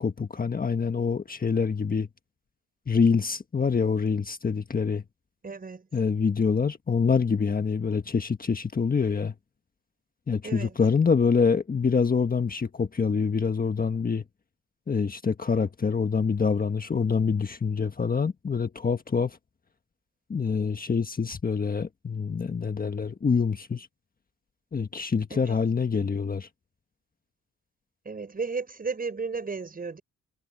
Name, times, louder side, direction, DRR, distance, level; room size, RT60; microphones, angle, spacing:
voice 1, 0.0-2.1 2.9-5.0 5.9-9.3 10.3-14.2 14.9-19.4 20.3-23.9 24.7-26.5, left 5 dB, 30° left, 1.5 m, -25 dB
voice 2, 5.4-5.9 10.4-10.8 25.3-25.6 28.1-30.0, right 4 dB, 30° right, 5.4 m, -34 dB
cardioid pair, 90°, 30 cm